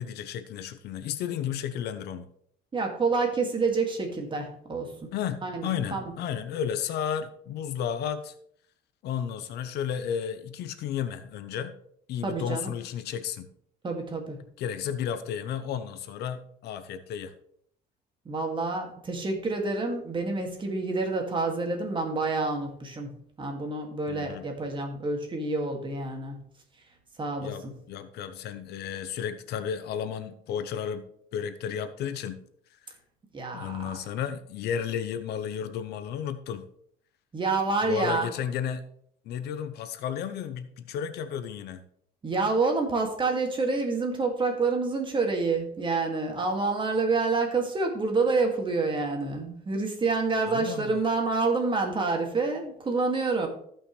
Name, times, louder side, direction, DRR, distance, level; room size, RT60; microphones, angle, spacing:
voice 1, 0.0-2.3 5.1-8.3 9.0-11.7 12.1-13.5 14.6-17.3 24.1-24.5 27.4-32.4 33.5-36.7 37.8-38.8 39.2-41.8 50.5-51.0, left 8 dB, 75° left, 11 dB, 0.9 m, -33 dB
voice 2, 2.7-5.1 5.4-6.0 12.2-12.7 13.8-14.4 18.3-23.1 23.4-26.4 27.2-27.5 33.3-33.9 37.3-38.3 42.2-53.5, right 3 dB, 30° right, 2 dB, 2.2 m, -28 dB
15.0 x 5.7 x 3.3 m, 0.66 s
cardioid pair, 110°, 17 cm